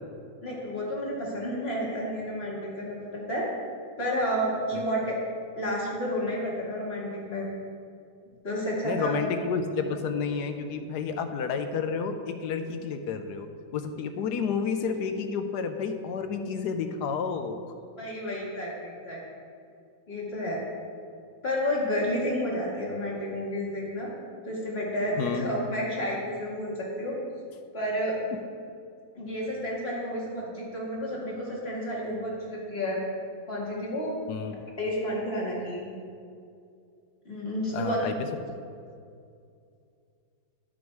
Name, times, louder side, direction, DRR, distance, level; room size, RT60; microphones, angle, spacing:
voice 1, 0.4-3.5 4.0-5.2 5.6-7.5 8.4-9.1 18.0-19.2 20.1-20.6 21.4-24.1 24.4-27.2 27.7-28.2 29.1-33.0 33.5-34.1 34.8-35.9 37.2-38.1, equal, 30° left, -5 dB, 2.3 m, -31 dB
voice 2, 8.8-17.6 25.2-25.5 34.3-34.6 37.7-38.1, left 5 dB, 65° left, 7 dB, 1.2 m, -30 dB
12.0 x 6.3 x 4.7 m, 2.4 s
omnidirectional pair, 2.1 m